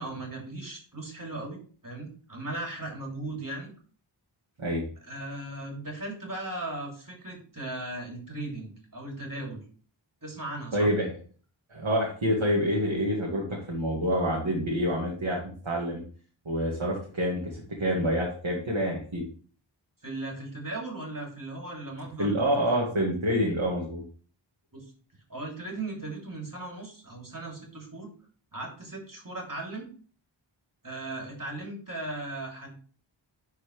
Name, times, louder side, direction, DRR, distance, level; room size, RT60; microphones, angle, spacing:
voice 1, 0.0-3.7 5.0-9.6 10.2-10.9 20.0-22.7 24.7-24.9 25.3-28.1 28.5-29.9 30.8-32.7, right 2 dB, 40° right, -1 dB, 3.2 m, -37 dB
voice 2, 10.7-11.1 11.7-16.0 16.5-19.2 22.2-24.0, equal, 75° right, -3 dB, 2.1 m, -27 dB
10.5 x 4.6 x 3.3 m, 0.42 s
wide cardioid pair, 45°, 48 cm